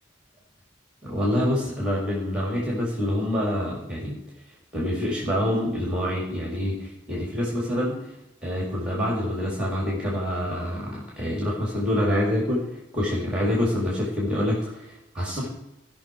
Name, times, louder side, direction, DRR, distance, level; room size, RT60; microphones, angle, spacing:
voice 1, 1.0-4.2 4.7-8.0 8.4-12.6 12.9-15.5, left 1 dB, 5° right, -3 dB, 2.2 m, -26 dB
17.0 x 6.0 x 4.5 m, 0.90 s
head